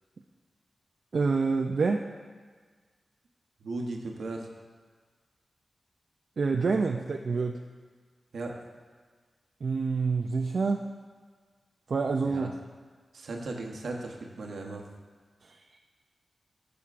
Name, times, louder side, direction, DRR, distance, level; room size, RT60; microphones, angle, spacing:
voice 1, 1.1-2.1 6.4-7.6 9.6-10.8 11.9-12.5 15.4-15.6, right 4 dB, 70° right, 3 dB, 0.4 m, -27 dB
voice 2, 3.6-4.5 8.3-8.5 12.2-12.5 13.1-14.8, right 2 dB, 85° right, 1 dB, 0.9 m, -36 dB
12.0 x 7.0 x 2.5 m, 1.5 s
cardioid pair, 55°, 0 cm